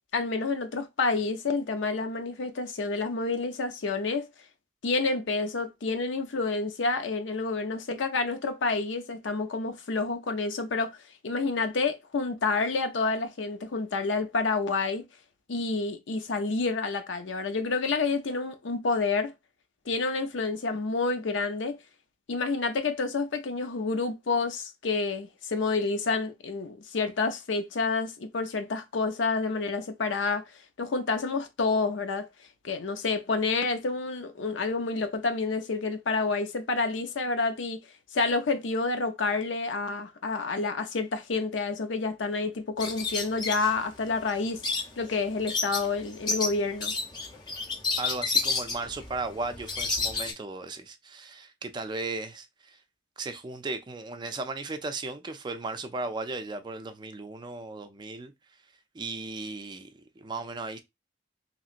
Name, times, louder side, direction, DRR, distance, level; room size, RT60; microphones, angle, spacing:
voice 1, 0.1-4.3 4.8-11.0 11.2-15.1 15.5-19.3 19.9-21.8 22.3-30.5 30.8-32.3 32.6-37.8 38.1-44.6 45.0-46.9, left 3 dB, 90° left, 0.6 m, -29 dB
sound 1, 42.8-50.3, left 4 dB, 25° left, 0.6 m, -31 dB
voice 2, 48.0-52.5 52.7-52.8 53.2-58.3 58.9-59.9 60.2-60.8, right 3 dB, 25° right, 0.4 m, -36 dB
3.0 x 2.8 x 2.4 m
head